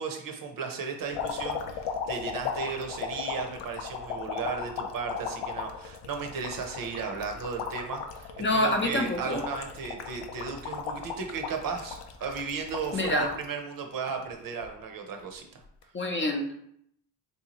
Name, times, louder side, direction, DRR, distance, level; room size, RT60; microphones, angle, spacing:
voice 1, 0.0-15.5, right 5 dB, 50° right, 4 dB, 0.7 m, -35 dB
sound 1, 1.1-13.5 13.9-14.7 15.7-15.8, left 6 dB, 90° left, 0.6 m, -36 dB
voice 2, 8.4-9.4 12.9-13.3 15.9-16.6, left 1 dB, 30° left, 2 dB, 0.6 m, -27 dB
3.5 x 2.7 x 2.9 m, 0.71 s
cardioid pair, 80°, 42 cm